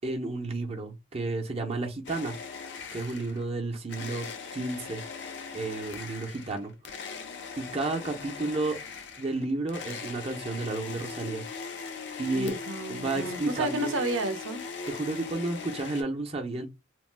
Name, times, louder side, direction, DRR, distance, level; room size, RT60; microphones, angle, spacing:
voice 1, 0.0-2.4 2.9-5.0 5.5-6.7 7.6-8.8 9.2-11.4 12.2-12.6 12.9-14.0 14.9-16.7, right 2 dB, 30° right, 0.6 m, -32 dB
sound 1, 2.0-3.5 3.9-16.0, left 5 dB, 60° left, 0.5 m, -40 dB
voice 2, 12.3-14.7, right 2 dB, 85° right, 0.6 m, -32 dB
2.9 x 2.1 x 3.2 m
head